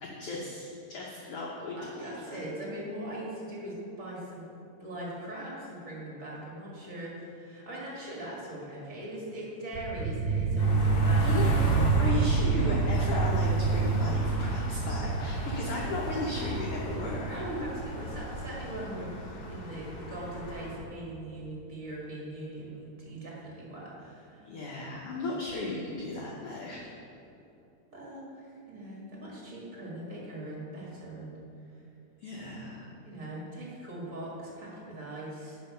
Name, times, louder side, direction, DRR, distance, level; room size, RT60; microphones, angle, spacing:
voice 1, 0.0-2.4 8.0-8.1 11.2-11.5 12.0-17.4 24.4-26.9 32.2-32.9, left 2 dB, 85° left, -3 dB, 1.3 m, -36 dB
voice 2, 1.0-1.4 1.8-4.5 4.8-11.6 17.1-19.1 19.5-24.5 27.9-31.3 33.0-35.6, right 1 dB, 35° right, -5 dB, 1.5 m, -40 dB
sound 1, 9.7-20.8, right 4 dB, 75° right, 2.0 m, -28 dB
sound 2, 10.6-20.8, left 1 dB, 60° left, 1.6 m, -37 dB
10.5 x 4.5 x 5.4 m, 2.7 s
omnidirectional pair, 3.8 m